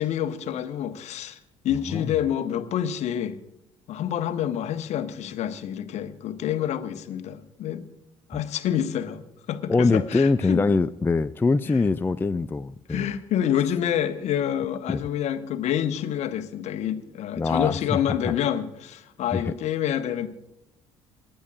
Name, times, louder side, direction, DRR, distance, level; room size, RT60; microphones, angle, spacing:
voice 1, 0.0-1.4 1.6-3.4 3.9-7.8 8.3-9.2 9.5-10.6 11.7-11.8 12.9-20.3, left 10 dB, 50° left, 9 dB, 1.3 m, -27 dB
voice 2, 9.7-13.1 14.9-15.0 17.4-18.3 19.3-19.5, left 3 dB, 15° left, 11 dB, 0.4 m, -23 dB
28.5 x 11.5 x 2.5 m, 0.86 s
figure-of-eight pair, 55°, 15 cm